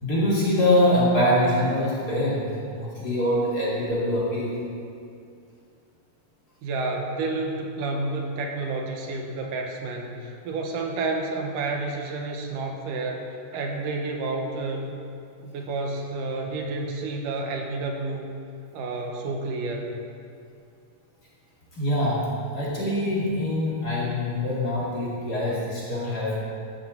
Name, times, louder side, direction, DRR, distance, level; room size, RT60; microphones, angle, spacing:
voice 1, 0.0-2.5 2.7-4.5 21.7-26.4, left 1 dB, 30° left, -7 dB, 2.6 m, -24 dB
voice 2, 6.6-15.0 15.4-18.3 18.7-19.9, right 3 dB, 80° right, 2 dB, 2.7 m, -30 dB
13.5 x 13.0 x 4.0 m, 2.5 s
omnidirectional pair, 3.8 m